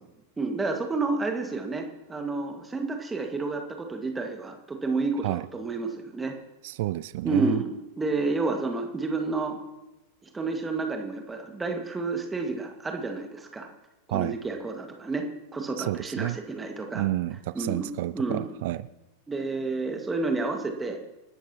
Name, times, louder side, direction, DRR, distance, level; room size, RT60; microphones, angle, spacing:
voice 1, 0.4-6.4 7.2-9.6 10.2-13.7 14.1-17.1 17.5-17.9 18.1-18.5 19.3-21.0, right 3 dB, 10° right, 4 dB, 1.9 m, -30 dB
voice 2, 6.6-7.6 14.1-14.4 15.8-16.4 16.9-18.9, right 16 dB, 50° right, 16 dB, 0.4 m, -30 dB
28.5 x 12.5 x 3.0 m, 0.98 s
figure-of-eight pair, 90°, 0 cm